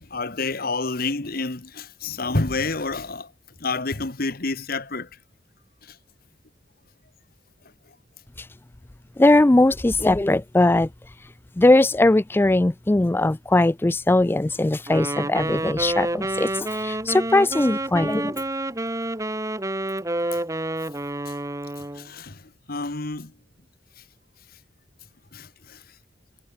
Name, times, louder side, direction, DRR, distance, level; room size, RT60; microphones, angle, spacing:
voice 1, 0.0-3.3 3.6-5.1 5.8-6.0 20.3-20.4 21.2-21.3 21.8-23.3 25.3-25.8, left 3 dB, 55° left, 1.5 m, -29 dB
voice 2, 9.2-10.9 11.6-18.3, left 2 dB, 10° left, 0.3 m, -19 dB
Wind instrument woodwind instrument, 14.9-22.1, right 1 dB, 15° right, 1.6 m, -28 dB
head